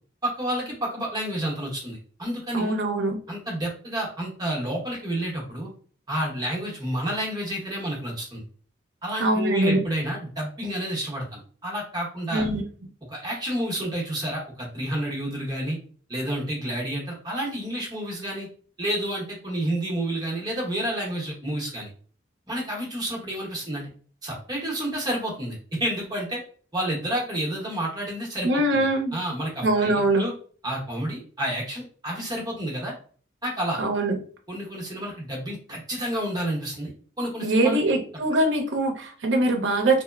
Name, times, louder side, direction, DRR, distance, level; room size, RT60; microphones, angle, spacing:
voice 1, 0.2-2.7 3.3-5.7 6.1-8.4 9.0-12.5 13.1-15.8 16.1-18.5 18.8-21.9 22.5-23.9 24.2-26.4 26.7-30.3 30.6-32.9 33.4-33.8 34.5-36.9 37.2-37.8, right 1 dB, 20° right, -3 dB, 0.8 m, -30 dB
voice 2, 2.5-3.2 9.2-9.8 12.3-12.6 28.4-29.2 29.6-30.3 33.8-34.2 37.4-40.0, right 2 dB, 70° right, 3 dB, 0.6 m, -22 dB
2.9 x 2.0 x 2.3 m, 0.42 s
head